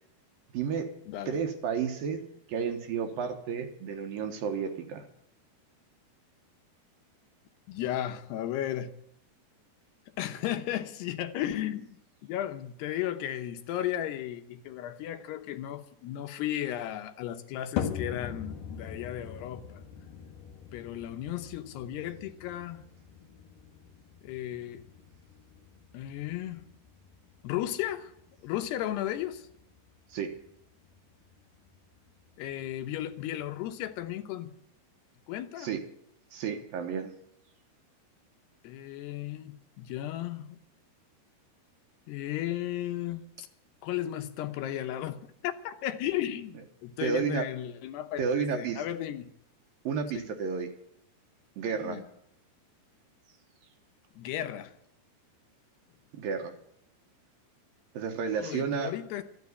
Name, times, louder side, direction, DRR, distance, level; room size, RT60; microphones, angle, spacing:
voice 1, 0.5-0.9 1.3-2.2 2.5-5.0 30.1-30.3 35.6-35.8 36.3-37.1 47.0-47.4 48.2-48.8 49.8-50.7 51.6-52.0 56.1-56.5 57.9-58.9, right 6 dB, 65° right, 5 dB, 2.7 m, -31 dB
voice 2, 1.1-1.4 7.7-8.9 10.2-19.8 20.7-22.8 24.2-24.8 25.9-26.7 27.4-28.1 28.4-29.5 32.4-34.5 35.3-35.7 38.6-40.6 42.1-43.5 43.8-49.3 50.1-50.3 51.8-52.1 54.2-54.7 58.3-59.2, left 12 dB, 80° left, 8 dB, 3.0 m, -35 dB
sound 1, 17.8-34.2, left 8 dB, 65° left, 2.6 m, -43 dB
13.0 x 9.6 x 9.5 m, 0.73 s
omnidirectional pair, 4.8 m